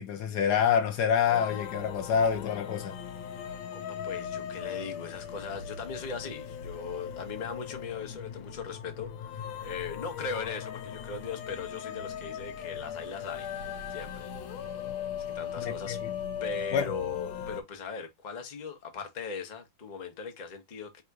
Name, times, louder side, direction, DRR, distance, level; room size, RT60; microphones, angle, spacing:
voice 1, 0.0-3.0 15.6-16.1 16.7-16.9, left 7 dB, 65° left, 1.2 m, -27 dB
sound 1, 1.3-17.6, left 8 dB, 90° left, 1.5 m, -38 dB
voice 2, 3.7-13.5 13.9-14.3 15.3-16.0 16.4-21.0, left 5 dB, 45° left, 0.6 m, -39 dB
3.5 x 2.5 x 4.6 m
omnidirectional pair, 2.1 m